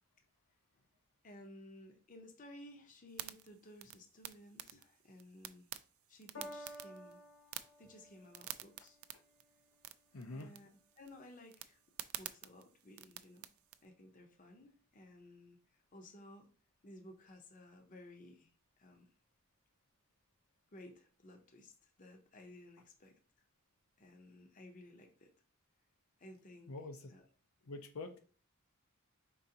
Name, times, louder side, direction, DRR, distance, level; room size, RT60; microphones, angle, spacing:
voice 1, 1.2-5.7 6.1-7.2 7.8-9.0 10.3-11.8 12.2-13.5 13.8-16.5 16.8-18.5 18.8-19.1 20.7-23.2 24.0-25.3 26.2-26.7 27.1-27.2, left 1 dB, 40° left, 4 dB, 0.7 m, -56 dB
sound 1, 3.1-13.8, right 13 dB, 75° right, 0.3 m, -51 dB
Piano, 6.3-12.9 13.7-13.8, equal, 60° left, 1.3 m, -56 dB
voice 2, 10.1-10.5 26.7-27.1 27.6-28.2, left 2 dB, 80° left, 5 dB, 0.7 m, -46 dB
4.8 x 3.9 x 2.8 m, 0.39 s
head